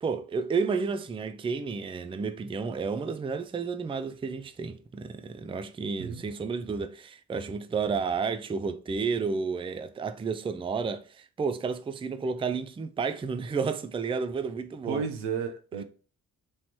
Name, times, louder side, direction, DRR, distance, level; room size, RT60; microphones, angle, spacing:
voice 1, 0.0-15.0 15.8-15.9, right 5 dB, 15° right, 0.4 m, -31 dB
voice 2, 14.9-15.8, right 6 dB, 85° right, 0.7 m, -32 dB
3.2 x 2.9 x 4.1 m
hypercardioid pair, 40°, 40 cm